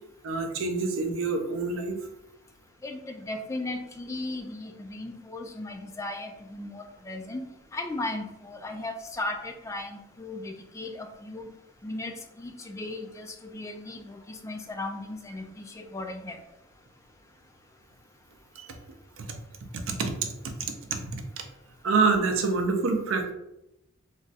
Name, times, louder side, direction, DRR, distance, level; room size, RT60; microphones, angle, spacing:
voice 1, 0.2-2.0 18.6-18.7 19.2-19.4 19.7-21.2 21.8-23.3, right 4 dB, 65° right, 5 dB, 0.5 m, -27 dB
voice 2, 2.8-7.4 7.7-11.5 11.8-12.1 12.4-16.4, left 2 dB, 15° left, 4 dB, 0.3 m, -36 dB
2.4 x 2.2 x 3.9 m, 0.87 s
head